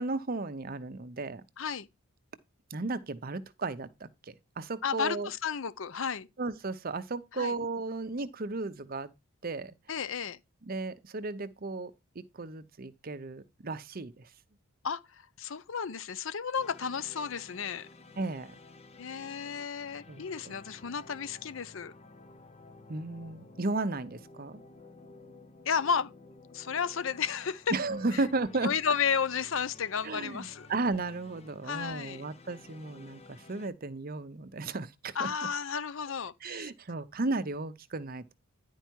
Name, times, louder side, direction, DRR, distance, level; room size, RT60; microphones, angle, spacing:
voice 1, 0.0-1.4 2.7-5.3 6.4-9.1 9.4-9.7 10.7-11.9 12.3-14.3 18.2-18.5 20.1-20.2 22.9-24.6 27.7-28.7 30.0-35.3 36.4-38.3, right 3 dB, 45° right, 0.7 m, -34 dB
voice 2, 1.6-1.9 4.8-6.3 7.3-7.6 9.9-10.4 14.8-17.9 19.0-21.9 25.6-26.1 26.5-27.8 28.1-28.2 28.6-30.7 31.6-32.2 35.1-36.7, left 6 dB, 65° left, 0.6 m, -33 dB
sound 1, 16.6-33.7, left 3 dB, 30° left, 0.8 m, -53 dB
10.5 x 4.5 x 4.5 m
head